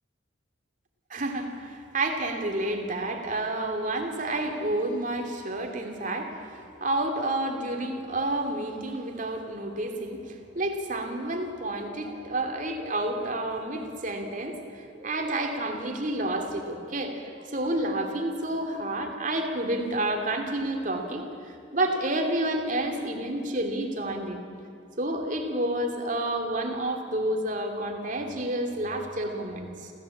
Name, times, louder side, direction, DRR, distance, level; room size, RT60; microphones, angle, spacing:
voice 1, 1.1-24.4 25.0-29.9, right 1 dB, 40° right, 4 dB, 2.8 m, -30 dB
27.5 x 15.5 x 8.6 m, 2.5 s
head